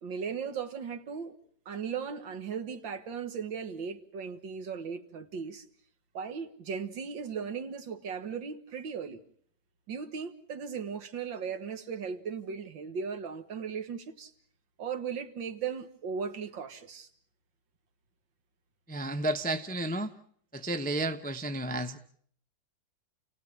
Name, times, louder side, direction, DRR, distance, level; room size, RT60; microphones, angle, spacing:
voice 1, 0.0-1.4 1.7-5.7 6.1-9.2 9.9-14.3 14.8-17.1, right 6 dB, 75° right, 2.3 m, -37 dB
voice 2, 18.9-20.1 20.5-22.0, right 1 dB, 10° left, 0.5 m, -32 dB
29.0 x 17.5 x 8.8 m
omnidirectional pair, 2.1 m